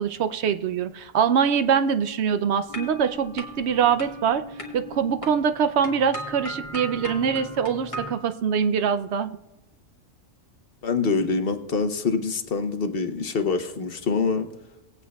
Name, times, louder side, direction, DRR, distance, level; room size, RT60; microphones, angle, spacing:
voice 1, 0.0-4.4 4.7-9.3, right 7 dB, 65° right, 10 dB, 0.7 m, -23 dB
sound 1, 2.7-8.1, left 1 dB, 25° left, 1.5 m, -37 dB
voice 2, 10.8-14.5, left 4 dB, 50° left, 7 dB, 0.9 m, -25 dB
19.5 x 8.7 x 2.3 m, 0.99 s
omnidirectional pair, 1.4 m